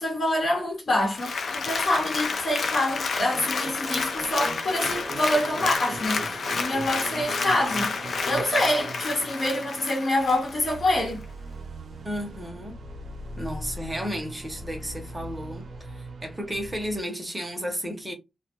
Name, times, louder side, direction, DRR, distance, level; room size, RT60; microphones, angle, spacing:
voice 1, 0.0-11.2, left 1 dB, 50° left, 1.0 m, -26 dB
Applause, 1.0-10.8 11.2-11.3, left 4 dB, 70° left, 0.3 m, -30 dB
sound 1, 3.3-17.0, right 2 dB, 70° right, 0.6 m, -40 dB
voice 2, 12.0-12.8 13.4-18.1, equal, 10° right, 0.7 m, -33 dB
2.1 x 2.1 x 2.8 m
wide cardioid pair, 140°, 0 cm